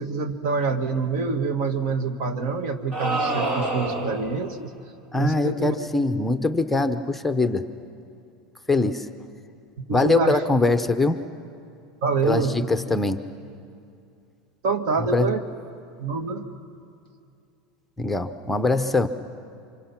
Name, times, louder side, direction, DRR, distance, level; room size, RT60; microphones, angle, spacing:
voice 1, 0.0-4.7 5.1-5.8 9.8-10.4 12.0-12.6 14.6-15.4 16.0-16.5, right 4 dB, 60° right, 8 dB, 1.8 m, -26 dB
sound 1, 2.9-4.3, right 2 dB, 35° right, 4.2 m, -26 dB
voice 2, 5.1-7.7 8.7-9.1 9.9-11.2 12.2-13.2 15.0-15.3 18.0-19.1, left 2 dB, 5° left, 8 dB, 0.7 m, -22 dB
29.5 x 26.0 x 5.9 m, 2.5 s
supercardioid pair, 150°, 3 cm